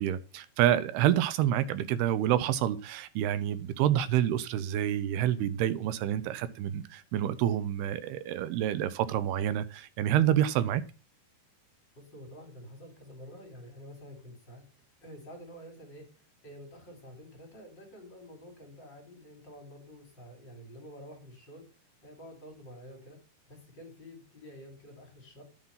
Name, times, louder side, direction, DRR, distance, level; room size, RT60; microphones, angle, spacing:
voice 1, 0.0-10.8, right 11 dB, 75° right, 2.8 m, -28 dB
voice 2, 12.0-14.6 15.0-23.2 23.5-25.4, equal, 25° left, 4.5 m, -49 dB
11.0 x 7.6 x 5.8 m
omnidirectional pair, 4.8 m